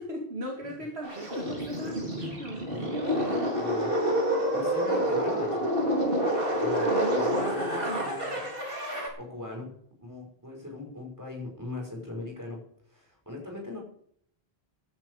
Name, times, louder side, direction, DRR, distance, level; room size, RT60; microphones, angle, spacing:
voice 1, 0.0-2.7 6.7-8.1, equal, 85° right, -1 dB, 2.6 m, -37 dB
sound 1, 1.0-9.1, equal, 60° right, 4.1 m, -28 dB
voice 2, 3.5-3.9 4.5-5.7 6.6-8.5 9.2-9.7 10.0-12.6 12.9-13.8, left 2 dB, 15° right, 0 dB, 5.8 m, -39 dB
16.0 x 12.0 x 4.9 m, 0.65 s
omnidirectional pair, 1.0 m